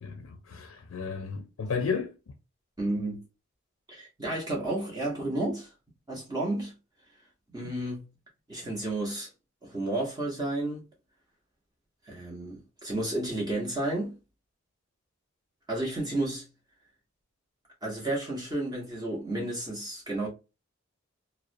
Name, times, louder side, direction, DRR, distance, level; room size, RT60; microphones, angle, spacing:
voice 1, 0.0-2.2, left 5 dB, 90° left, 0.4 m, -33 dB
voice 2, 2.8-3.2 3.9-5.7 6.1-6.7 7.5-8.1 8.5-9.3 9.6-10.8 12.0-14.2 15.7-16.5 17.8-20.3, right 1 dB, 20° right, 0.7 m, -32 dB
2.3 x 2.1 x 2.5 m
head